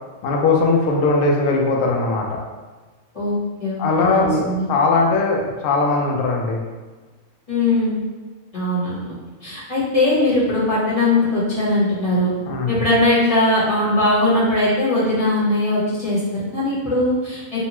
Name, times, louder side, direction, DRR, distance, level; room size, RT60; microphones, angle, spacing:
voice 1, 0.2-2.4 3.8-6.6 12.5-12.8, left 3 dB, 75° left, 0 dB, 0.9 m, -19 dB
voice 2, 3.1-4.7 7.5-8.0 8.5-9.1 9.4-12.3 12.7-17.7, left 1 dB, 30° left, -10 dB, 1.0 m, -20 dB
2.9 x 2.2 x 2.9 m, 1.3 s
omnidirectional pair, 1.4 m